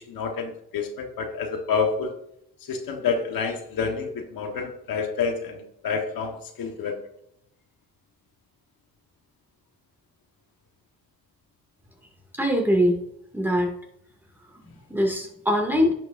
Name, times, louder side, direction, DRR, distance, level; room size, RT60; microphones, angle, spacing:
voice 1, 0.0-2.1 2.7-6.9, left 5 dB, 75° left, 3 dB, 1.4 m, -28 dB
voice 2, 12.3-13.0 13.3-13.7 14.6-15.9, equal, 5° right, 0 dB, 2.2 m, -22 dB
10.5 x 6.2 x 2.6 m, 0.76 s
cardioid pair, 85°, 35 cm